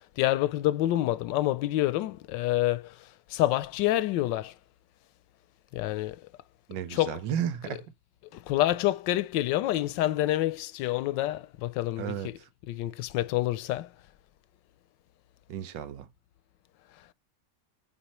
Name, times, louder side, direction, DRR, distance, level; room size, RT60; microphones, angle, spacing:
voice 1, 0.2-2.9 3.3-4.5 5.7-6.2 6.9-7.2 8.3-12.3 12.7-13.9, left 15 dB, 85° left, 1.3 m, -27 dB
voice 2, 6.7-7.9 12.0-12.5 15.5-16.1, right 9 dB, 85° right, 1.5 m, -34 dB
8.8 x 4.3 x 3.0 m
omnidirectional pair, 1.9 m